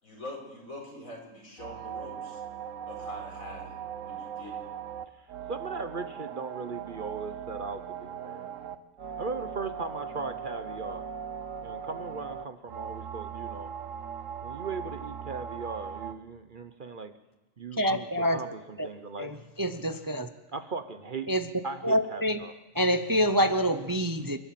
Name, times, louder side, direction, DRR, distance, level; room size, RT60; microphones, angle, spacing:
voice 1, 0.0-2.4 2.9-4.7, left 1 dB, 85° left, 0 dB, 5.2 m, -44 dB
sound 1, 1.6-16.1, right 8 dB, 70° right, 1.3 m, -39 dB
voice 2, 5.5-8.5 9.2-11.1 11.6-13.7 14.4-17.1 17.6-19.3 20.5-21.3 21.6-22.5, right 4 dB, 45° right, 10 dB, 0.9 m, -38 dB
voice 3, 17.8-18.4 18.8-18.9 19.2-20.3 21.3-21.5 21.8-22.4 22.7-24.4, equal, 20° right, 9 dB, 0.6 m, -26 dB
29.5 x 11.5 x 7.6 m, 1.1 s
omnidirectional pair, 1.4 m